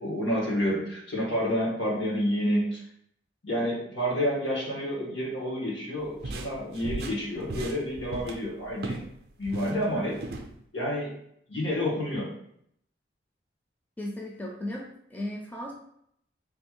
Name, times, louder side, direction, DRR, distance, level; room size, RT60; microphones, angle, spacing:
voice 1, 0.0-2.8 3.4-9.0 9.4-10.2 10.7-11.1 11.5-12.3, equal, 85° left, -4 dB, 1.6 m, -29 dB
sound 1, 6.0-9.1 9.4-10.5, right 2 dB, 55° right, 0.4 m, -37 dB
voice 2, 14.0-15.7, left 1 dB, 10° left, -1 dB, 0.4 m, -36 dB
3.3 x 2.5 x 4.5 m, 0.72 s
head